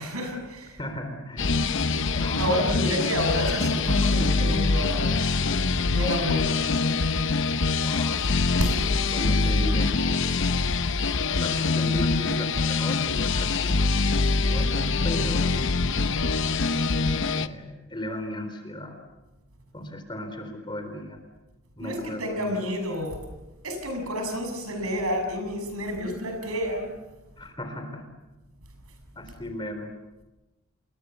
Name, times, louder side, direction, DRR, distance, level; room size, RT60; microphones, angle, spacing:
voice 1, 0.0-0.8 2.4-5.2 5.9-6.6 8.6-8.8 21.8-23.2 23.6-26.9, equal, 85° right, 5 dB, 6.8 m, -29 dB
voice 2, 0.8-1.6 2.1-2.5 7.7-8.3 9.1-10.3 11.4-14.1 14.4-15.9 16.9-19.0 19.7-21.2 21.8-22.7 27.4-28.1 29.2-29.9, left 1 dB, 20° left, 6 dB, 3.9 m, -36 dB
sound 1, 1.4-17.5, left 3 dB, 60° left, 0.9 m, -24 dB
29.0 x 22.0 x 7.1 m, 1.1 s
head